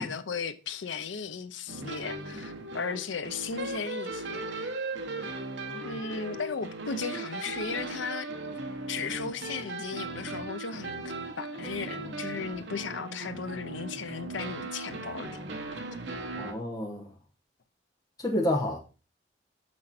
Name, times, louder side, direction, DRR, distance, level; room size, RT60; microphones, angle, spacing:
voice 1, 0.0-4.7 5.2-5.3 5.8-8.3 8.9-15.4 15.7-15.8, left 5 dB, 80° left, 0.6 m, -36 dB
sound 1, 1.7-16.5, right 2 dB, 70° right, 1.1 m, -38 dB
voice 2, 16.3-17.1 18.2-18.8, left 1 dB, 20° left, 1.1 m, -29 dB
6.4 x 6.1 x 4.2 m
head